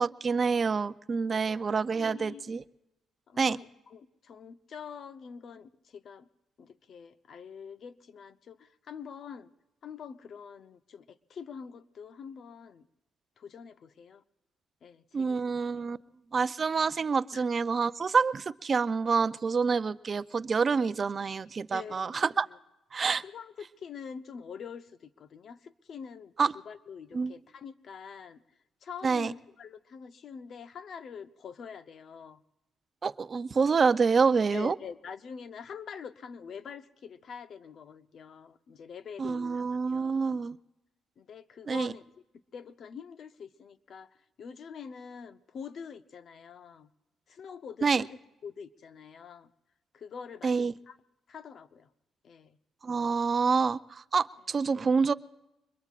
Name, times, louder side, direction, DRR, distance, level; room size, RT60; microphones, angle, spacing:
voice 1, 0.0-2.6 3.4-3.6 15.1-16.0 16.3-22.5 22.9-23.2 26.4-26.5 27.1-27.3 29.0-29.3 33.0-34.8 39.2-40.6 41.7-41.9 47.8-48.0 50.4-50.7 52.8-55.1, right 5 dB, 40° right, 14 dB, 0.5 m, -27 dB
voice 2, 1.3-2.6 3.3-6.3 6.6-9.5 9.8-12.9 13.4-14.2 14.8-15.4 17.3-17.5 21.7-22.6 23.2-28.4 28.8-32.4 34.5-40.3 41.2-42.0 42.5-44.1 44.4-46.9 47.3-48.2 48.4-49.5 49.9-51.0 51.3-51.9 52.2-52.6, left 6 dB, 60° left, 12 dB, 0.8 m, -45 dB
24.5 x 22.0 x 2.5 m, 0.92 s
cardioid pair, 90°, 0 cm